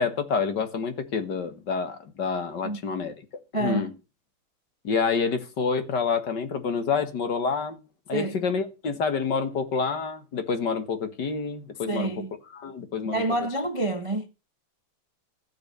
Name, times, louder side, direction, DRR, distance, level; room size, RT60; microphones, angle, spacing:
voice 1, 0.0-3.1 3.6-3.9 4.8-7.8 8.1-12.1 12.5-13.2, left 5 dB, 55° left, 2.1 m, -28 dB
voice 2, 3.5-3.9 8.1-8.4 11.9-12.3 13.0-14.3, right 2 dB, 25° right, 0.6 m, -28 dB
15.0 x 6.2 x 6.8 m
omnidirectional pair, 2.4 m